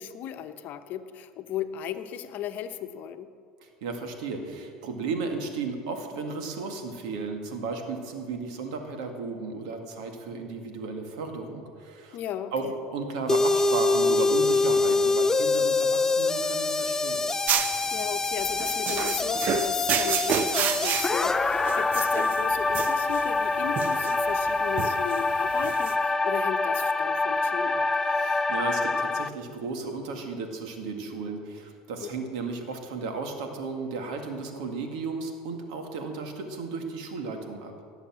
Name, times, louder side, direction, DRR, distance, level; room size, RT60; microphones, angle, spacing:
voice 1, 0.0-3.3 12.1-12.8 17.9-27.9 32.0-32.1, left 10 dB, 55° left, 9 dB, 1.0 m, -36 dB
voice 2, 3.6-12.2 12.5-17.3 28.1-37.7, right 4 dB, 80° right, 4 dB, 2.1 m, -34 dB
sound 1, 13.3-29.3, left 3 dB, 15° left, 0.5 m, -25 dB
sound 2, 17.5-25.9, right 8 dB, 50° right, 0.8 m, -30 dB
17.5 x 7.3 x 7.5 m, 2.2 s
supercardioid pair, 100°, 4 cm